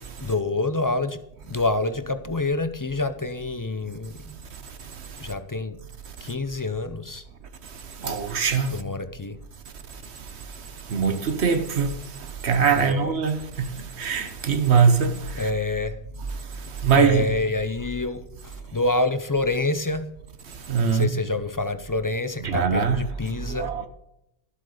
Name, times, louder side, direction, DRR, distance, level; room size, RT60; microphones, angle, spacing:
voice 1, 0.2-1.2 1.5-4.4 5.2-5.8 6.2-7.2 8.7-9.4 12.8-13.1 15.4-15.9 16.9-18.2 18.7-20.1 20.8-23.7, left 2 dB, 25° left, 0.4 m, -27 dB
voice 2, 8.0-8.7 10.9-11.9 12.4-13.7 14.0-15.5 16.8-17.3 20.7-21.1 22.4-23.0 23.6-23.9, right 6 dB, 75° right, 1.2 m, -22 dB
12.5 x 7.8 x 4.9 m
omnidirectional pair, 1.1 m